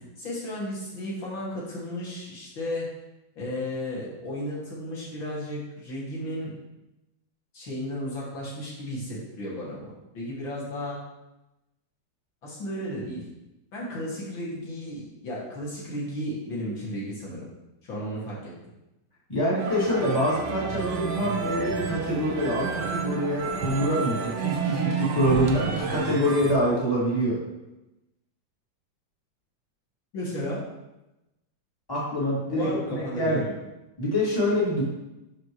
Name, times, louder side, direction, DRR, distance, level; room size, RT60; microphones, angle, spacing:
voice 1, 0.2-2.9 3.4-6.5 7.5-11.0 12.4-13.2 13.7-17.4 17.8-18.5 30.1-30.6 32.5-33.5, left 1 dB, 75° left, -6 dB, 3.0 m, -34 dB
voice 2, 19.3-27.4 31.9-33.4 34.0-34.8, equal, 10° left, -8 dB, 2.7 m, -25 dB
sound 1, 19.6-26.6, right 5 dB, 75° right, 1.5 m, -31 dB
12.5 x 5.1 x 3.1 m, 0.96 s
omnidirectional pair, 2.1 m